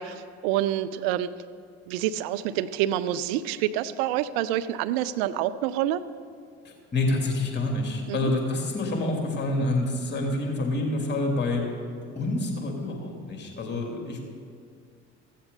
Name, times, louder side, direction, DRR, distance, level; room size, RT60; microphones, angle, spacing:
voice 1, 0.0-1.3 1.9-6.0 8.1-8.3, right 12 dB, 55° right, 12 dB, 0.6 m, -27 dB
voice 2, 6.6-11.6 12.1-14.2, left 2 dB, 30° left, 1 dB, 3.1 m, -27 dB
15.0 x 14.5 x 4.0 m, 2.2 s
figure-of-eight pair, 60°, 36 cm